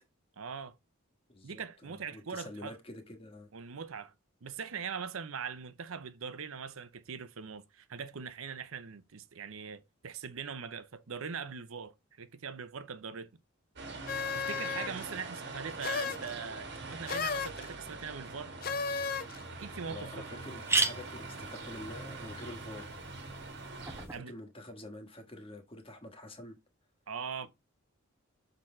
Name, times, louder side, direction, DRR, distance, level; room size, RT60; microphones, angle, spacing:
voice 1, 0.4-0.7 1.4-2.8 3.5-4.1 4.4-13.3 14.3-18.5 19.6-20.4 24.1-24.3 27.1-27.5, right 6 dB, 80° right, 0.7 m, -41 dB
voice 2, 1.3-3.5 19.9-22.9 24.0-26.5, left 1 dB, 25° left, 1.4 m, -47 dB
sound 1, 13.8-24.1, right 3 dB, 55° right, 1.5 m, -44 dB
sound 2, 14.1-15.1 15.8-16.3 17.1-17.7 18.6-19.4, left 5 dB, 45° left, 0.6 m, -34 dB
sound 3, 19.1-19.2 19.7-19.8 20.0-20.1 20.4-24.2, right 3 dB, 10° right, 0.8 m, -36 dB
6.5 x 3.9 x 4.3 m
head